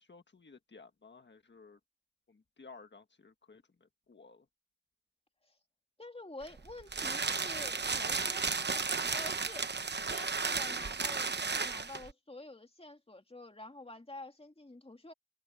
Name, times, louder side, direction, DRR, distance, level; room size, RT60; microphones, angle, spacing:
voice 1, 0.0-1.8 2.3-4.4, left 4 dB, 85° left, 1.6 m, -56 dB
voice 2, 6.0-9.7 9.9-15.1, left 2 dB, 35° left, 2.6 m, -49 dB
sound 1, 6.4-12.1, right 4 dB, 70° right, 0.9 m, -34 dB
wide cardioid pair, 55°, 18 cm